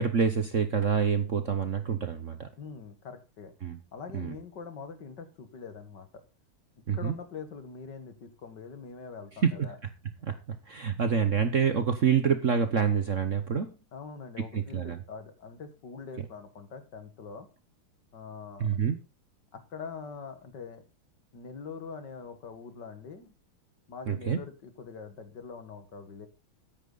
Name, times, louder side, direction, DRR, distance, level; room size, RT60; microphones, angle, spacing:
voice 1, 0.0-2.5 3.6-3.8 4.1-4.3 6.9-7.1 9.4-9.7 10.2-13.7 14.4-15.0 18.6-19.0 24.1-24.4, right 6 dB, 45° right, 9 dB, 1.2 m, -27 dB
voice 2, 2.6-3.5 3.9-6.2 6.9-9.8 13.5-13.6 13.9-17.5 18.1-18.7 19.5-20.8 21.3-23.3 23.9-26.3, left 5 dB, 55° left, 9 dB, 2.3 m, -43 dB
14.0 x 10.0 x 4.0 m, 0.30 s
omnidirectional pair, 2.3 m